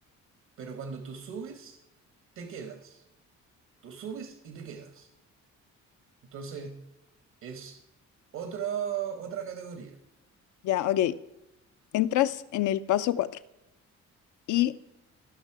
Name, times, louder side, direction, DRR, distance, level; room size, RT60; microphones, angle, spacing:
voice 1, 0.6-1.8 2.3-3.0 3.8-5.1 6.3-6.9 7.4-7.8 8.3-10.0, right 8 dB, 70° right, 7 dB, 1.3 m, -37 dB
voice 2, 10.6-11.2 11.9-13.3 14.5-14.7, left 13 dB, 80° left, 12 dB, 0.6 m, -25 dB
15.5 x 5.6 x 4.8 m, 0.94 s
cardioid pair, 90°, 30 cm